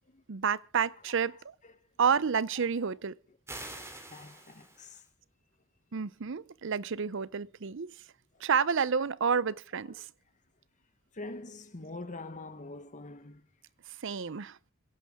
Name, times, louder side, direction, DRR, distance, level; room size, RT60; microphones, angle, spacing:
voice 1, 0.3-1.4 2.0-3.2 5.9-7.9 8.4-10.1 14.0-14.6, right 6 dB, 65° right, 0.6 m, -29 dB
voice 2, 1.0-1.9 2.8-2.9 4.1-5.1 8.3-8.5 9.3-9.5 9.8-10.1 11.1-13.5, left 2 dB, 40° left, 1.1 m, -45 dB
sound 1, 3.5-5.1, right 2 dB, 15° right, 3.2 m, -45 dB
26.5 x 11.0 x 3.6 m
head